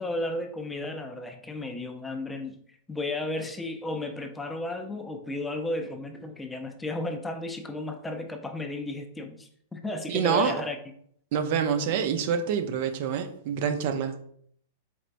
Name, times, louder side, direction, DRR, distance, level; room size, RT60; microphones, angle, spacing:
voice 1, 0.0-10.8, left 2 dB, 10° left, 5 dB, 0.4 m, -34 dB
voice 2, 10.1-10.5 11.3-14.2, right 7 dB, 55° right, 8 dB, 0.5 m, -27 dB
4.3 x 3.2 x 2.5 m, 0.65 s
hypercardioid pair, 130°, 0 cm